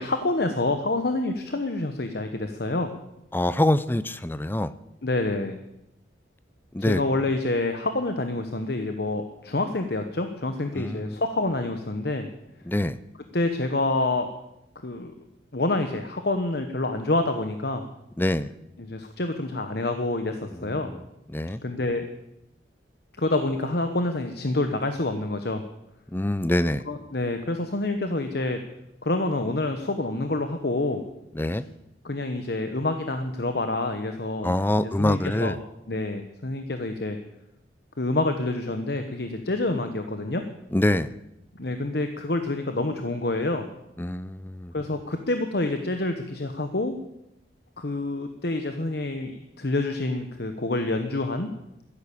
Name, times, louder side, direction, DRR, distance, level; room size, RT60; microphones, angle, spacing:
voice 1, 0.0-2.9 5.0-5.6 6.8-12.3 13.3-14.3 14.8-15.1 15.5-17.8 18.8-20.9 21.6-22.1 23.2-25.6 26.9-28.6 29.0-31.0 31.5-31.6 32.0-35.6 35.9-37.2 38.0-40.4 41.5-43.7 44.7-46.9 47.8-51.5, left 2 dB, 55° left, 7 dB, 1.1 m, -27 dB
voice 2, 3.3-4.7 6.7-7.0 10.7-11.1 12.7-13.0 18.2-18.5 20.8-20.9 21.3-21.6 26.1-26.8 31.4-31.6 34.4-35.6 40.7-41.1 44.0-44.7, left 1 dB, 10° left, 15 dB, 0.5 m, -25 dB
13.0 x 10.5 x 8.5 m, 0.86 s
head